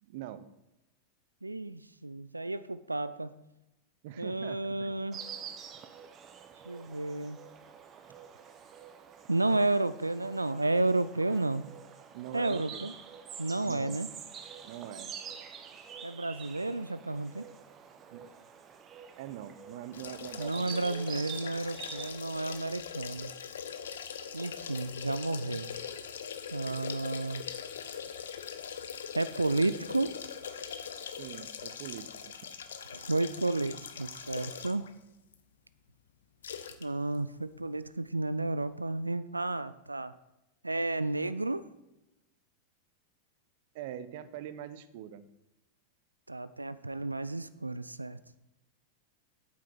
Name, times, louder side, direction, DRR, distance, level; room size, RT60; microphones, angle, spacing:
voice 1, 0.0-0.5 4.0-4.9 12.1-12.9 13.6-14.0 14.6-15.1 18.1-18.2 19.2-21.2 31.2-32.3 43.7-45.2, right 11 dB, 50° right, 13 dB, 0.7 m, -43 dB
voice 2, 1.4-3.4 4.2-5.2 6.7-7.5 9.3-11.6 12.3-12.9 13.4-14.1 16.0-17.4 20.4-23.3 24.3-25.7 26.5-27.4 29.1-30.1 32.9-34.8 36.8-40.1 40.6-41.6 46.3-48.2, right 2 dB, 85° right, 15 dB, 0.4 m, -32 dB
Insect, 5.1-22.1, right 7 dB, 30° right, 1.0 m, -47 dB
sound 1, 19.9-34.9 35.3-35.4 36.4-36.9 37.1-37.2, left 7 dB, 65° left, 0.8 m, -42 dB
8.7 x 7.6 x 5.9 m, 0.95 s
figure-of-eight pair, 90°, 0 cm